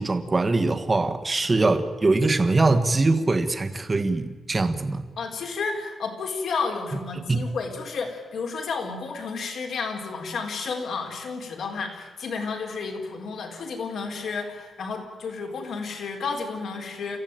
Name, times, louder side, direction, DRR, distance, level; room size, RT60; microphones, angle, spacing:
voice 1, 0.0-5.1 7.3-7.4, right 3 dB, 20° right, 8 dB, 1.5 m, -22 dB
voice 2, 5.2-17.2, left 4 dB, 55° left, 3 dB, 4.3 m, -31 dB
28.5 x 15.5 x 9.2 m, 1.4 s
wide cardioid pair, 170°, 0 cm